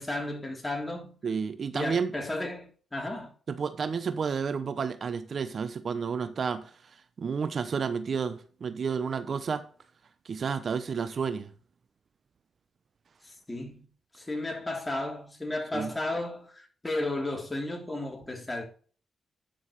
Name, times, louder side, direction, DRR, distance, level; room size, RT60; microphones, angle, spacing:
voice 1, 0.0-1.2 1.7-3.3 13.2-13.9 14.1-18.6, left 2 dB, 20° left, 3.4 m, -34 dB
voice 2, 1.2-2.1 3.5-6.7 7.2-9.7 10.2-11.5 15.7-15.9, right 6 dB, 55° right, 0.8 m, -31 dB
11.5 x 6.3 x 3.2 m
cardioid pair, 60°, 0 cm